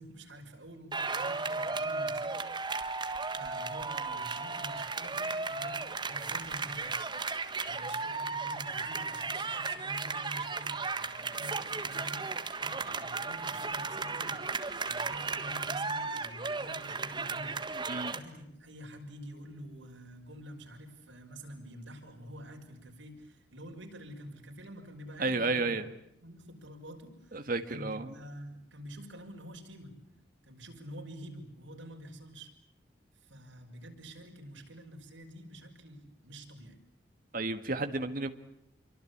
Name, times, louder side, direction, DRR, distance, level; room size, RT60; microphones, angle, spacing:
voice 1, 0.0-7.1 7.6-17.6 18.0-25.7 26.2-29.9 30.5-32.5 33.1-36.8, equal, 85° right, 2 dB, 6.2 m, -48 dB
sound 1, 0.9-18.2, right 4 dB, 25° right, 1.5 m, -35 dB
voice 2, 25.2-25.8 27.3-28.1 37.3-38.3, right 3 dB, 50° right, 8 dB, 1.7 m, -32 dB
27.5 x 24.0 x 8.7 m, 0.77 s
head